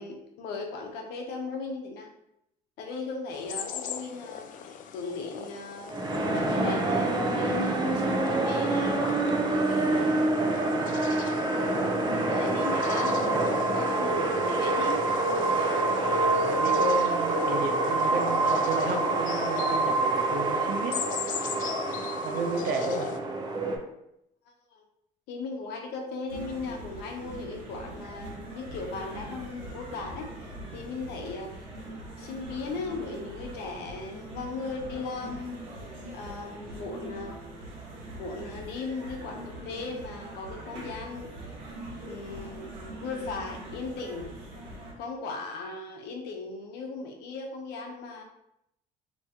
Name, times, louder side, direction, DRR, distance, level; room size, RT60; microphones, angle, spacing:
voice 1, 0.0-2.1 2.8-4.5 4.9-5.9 6.3-9.1 9.5-10.5 11.0-11.5 12.1-13.2 13.7-15.0 21.9-22.2 24.7-24.8 25.3-35.6 36.1-37.4 38.1-41.3 42.0-42.7 43.0-44.3 45.0-48.2, left 3 dB, 80° left, 2 dB, 0.8 m, -37 dB
sound 1, 3.3-23.2, left 7 dB, 50° left, 0.4 m, -38 dB
sound 2, 5.9-23.8, right 2 dB, 25° right, 0.7 m, -26 dB
voice 2, 16.2-21.0 22.2-23.1 42.9-43.0, right 3 dB, 70° right, 5 dB, 0.6 m, -32 dB
sound 3, 26.3-44.9, right 1 dB, 90° right, 1.3 m, -42 dB
3.0 x 2.7 x 3.6 m, 0.81 s
cardioid pair, 100°, 17 cm